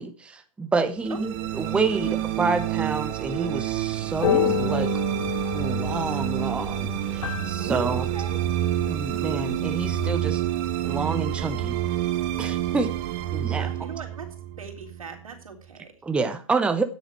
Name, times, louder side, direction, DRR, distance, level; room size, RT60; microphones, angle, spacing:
voice 1, 0.0-4.9 5.5-8.1 8.9-10.4 10.8-11.8 12.4-12.9 13.3-13.7 16.0-16.8, right 4 dB, 5° right, 8 dB, 0.8 m, -28 dB
sound 1, 1.0-15.4, right 12 dB, 35° right, 1.4 m, -28 dB
voice 2, 1.1-1.5 7.6-8.4 13.6-14.3 14.6-15.9, right 6 dB, 80° right, 4 dB, 3.7 m, -39 dB
sound 2, 4.1-10.1, left 11 dB, 65° left, 2.0 m, -31 dB
9.6 x 7.2 x 8.2 m, 0.38 s
hypercardioid pair, 135°, 17 cm